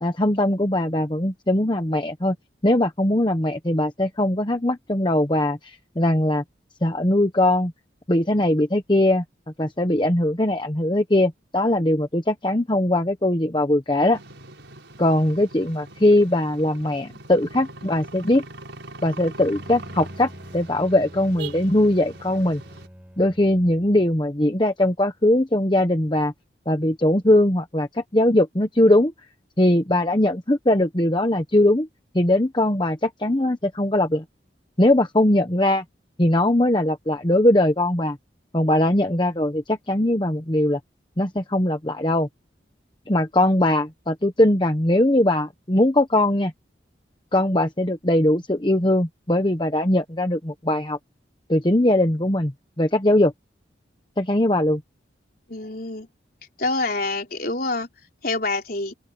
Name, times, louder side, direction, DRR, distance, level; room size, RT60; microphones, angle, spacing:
voice 1, 0.0-2.3 2.6-6.4 6.8-7.7 8.1-9.2 9.6-14.2 15.0-18.4 19.0-22.6 23.2-26.3 26.7-29.1 29.6-31.9 32.1-34.2 34.8-35.8 36.2-38.2 38.5-40.8 41.2-42.3 43.1-46.5 47.3-51.0 51.5-53.3 54.2-54.8, left 1 dB, 25° left, 1.1 m, -20 dB
sound 1, 14.1-22.9, right 2 dB, 75° right, 5.2 m, -42 dB
Bowed string instrument, 19.4-24.3, equal, 5° right, 5.3 m, -45 dB
voice 2, 55.5-56.1 56.6-57.9 58.2-58.9, left 2 dB, 50° left, 4.3 m, -26 dB
open air
head